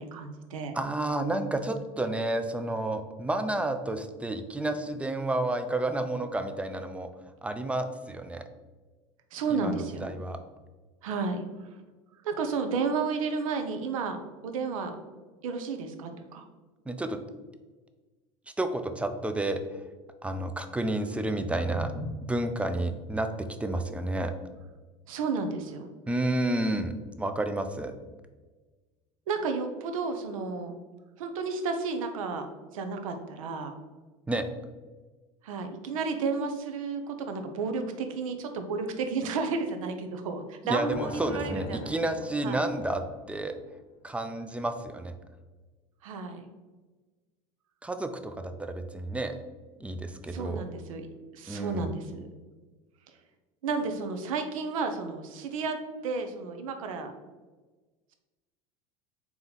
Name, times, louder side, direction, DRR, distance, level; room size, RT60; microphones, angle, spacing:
voice 1, 0.0-0.8 9.3-10.1 11.0-11.4 12.2-15.0 15.4-16.4 25.1-25.9 29.3-30.7 31.2-32.5 32.7-33.7 35.4-42.0 42.4-42.6 46.0-46.5 50.3-51.1 51.3-52.3 53.6-55.8 56.0-57.1, right 4 dB, 90° right, 7 dB, 0.6 m, -32 dB
voice 2, 0.7-7.1 7.4-8.4 9.5-10.4 16.9-17.2 18.6-19.6 20.2-21.9 22.3-24.3 26.1-26.9 27.2-27.9 34.3-34.5 40.6-43.6 44.0-45.1 47.8-49.4 49.8-50.6 51.5-51.9, right 1 dB, 5° right, 8 dB, 0.4 m, -30 dB
sound 1, 20.8-26.9, right 1 dB, 55° right, 1.0 m, -45 dB
sound 2, 40.9-43.3, left 3 dB, 55° left, 0.7 m, -41 dB
3.8 x 3.0 x 4.0 m, 1.3 s
supercardioid pair, 95°, 17 cm